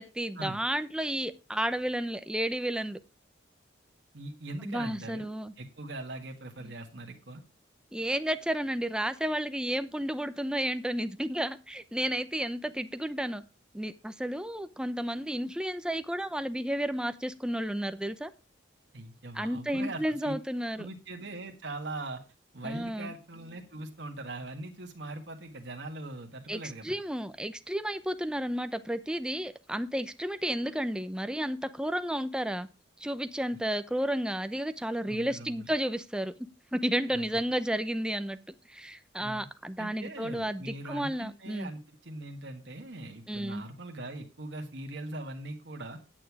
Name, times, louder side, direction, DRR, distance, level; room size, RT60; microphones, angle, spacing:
voice 1, 0.0-3.0 4.6-5.5 6.7-6.8 7.9-13.4 13.7-18.3 19.3-20.9 22.6-23.1 26.5-32.7 33.0-36.3 36.7-41.7 43.3-43.6, right 1 dB, 5° right, 0.6 m, -32 dB
voice 2, 4.1-5.3 5.6-7.4 18.9-20.4 20.8-22.2 22.5-27.0 35.1-35.7 37.1-37.2 39.2-39.5 39.8-46.0, right 2 dB, 65° right, 1.5 m, -41 dB
9.1 x 8.8 x 4.7 m
head